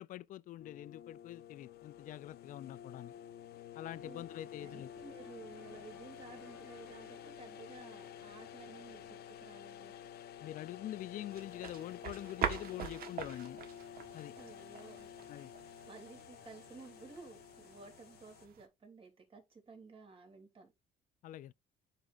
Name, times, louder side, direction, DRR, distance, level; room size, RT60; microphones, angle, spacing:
voice 1, 0.0-3.1 3.7-4.9 10.4-13.6 14.1-14.3 15.3-15.5 21.2-21.5, left 13 dB, 50° left, 0.4 m, -45 dB
sound 1, 0.6-18.5, left 9 dB, 70° left, 0.9 m, -51 dB
sound 2, 3.9-9.2, right 1 dB, ahead, 2.1 m, -62 dB
voice 2, 4.0-10.1 14.4-15.1 15.8-20.7, right 4 dB, 35° right, 2.9 m, -54 dB
sound 3, 11.3-18.7, right 8 dB, 60° right, 1.4 m, -44 dB
9.9 x 5.1 x 2.5 m
cardioid pair, 110°, 17 cm